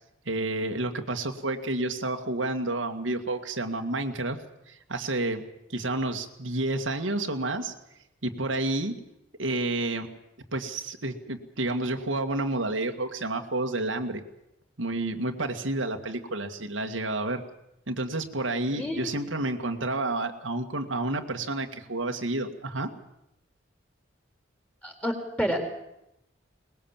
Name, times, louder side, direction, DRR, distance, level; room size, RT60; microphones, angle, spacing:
voice 1, 0.3-4.4 4.7-5.4 5.7-7.7 8.2-8.9 9.4-10.1 10.5-14.2 14.8-17.4 17.9-22.9, right 2 dB, 90° right, 5 dB, 2.0 m, -30 dB
voice 2, 18.7-19.1 24.8-25.6, equal, 5° left, 3 dB, 3.6 m, -29 dB
22.0 x 20.0 x 7.4 m, 0.84 s
head